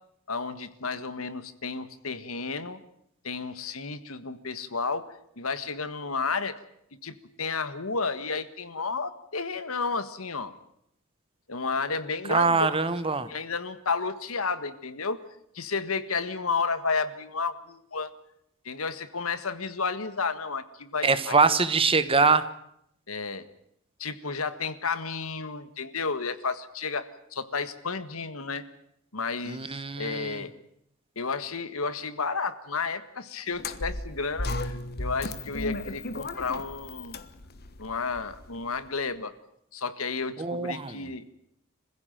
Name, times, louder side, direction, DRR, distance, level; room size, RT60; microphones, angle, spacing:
voice 1, 0.3-2.8 3.2-5.1 5.4-6.5 7.0-10.5 11.5-12.7 13.3-15.2 15.5-18.1 18.6-21.4 23.1-23.5 24.0-28.6 29.1-30.5 31.1-37.2 37.8-39.3 39.7-41.3, left 4 dB, 75° left, 12 dB, 1.6 m, -32 dB
voice 2, 12.3-13.3 21.0-22.5 29.5-30.4 40.4-41.0, right 4 dB, 25° right, 12 dB, 1.2 m, -23 dB
sound 1, 33.5-38.8, left 2 dB, 45° left, 1.4 m, -35 dB
26.0 x 16.0 x 9.2 m, 0.75 s
head